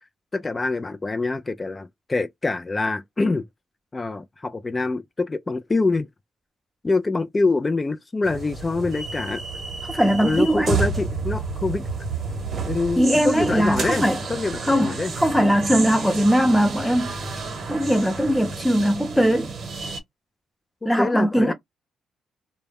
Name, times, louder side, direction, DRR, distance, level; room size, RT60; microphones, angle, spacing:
voice 1, 0.3-3.4 3.9-6.1 6.8-9.4 10.2-11.9 12.7-15.1 20.8-21.5, left 3 dB, 25° left, 0.3 m, -25 dB
sound 1, 8.2-20.0, right 4 dB, 50° right, 1.0 m, -30 dB
voice 2, 9.8-10.8 13.0-14.2 14.7-17.1 17.7-19.5 20.8-21.5, equal, 5° left, 0.8 m, -20 dB
2.1 x 2.1 x 3.3 m
cardioid pair, 90°, 0 cm